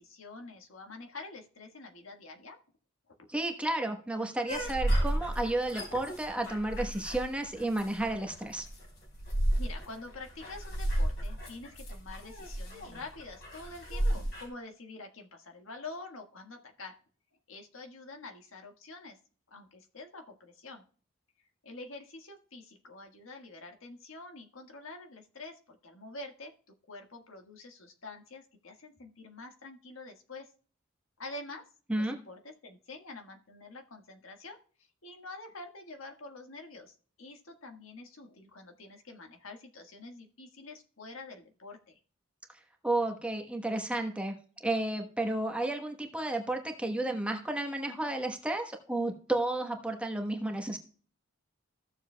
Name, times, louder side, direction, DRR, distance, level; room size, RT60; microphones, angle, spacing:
voice 1, 0.0-2.6 9.6-17.0 17.5-19.2 19.5-20.8 21.6-26.5 26.9-30.5 31.2-31.6 31.9-42.0, left 3 dB, 85° left, 3 dB, 1.6 m, -47 dB
voice 2, 3.3-8.7 31.9-32.2 42.8-44.3 44.6-50.8, right 2 dB, 5° right, 3 dB, 1.1 m, -32 dB
sound 1, 4.5-14.4, right 1 dB, 55° left, 3.5 m, -33 dB
15.5 x 7.0 x 2.2 m, 0.42 s
head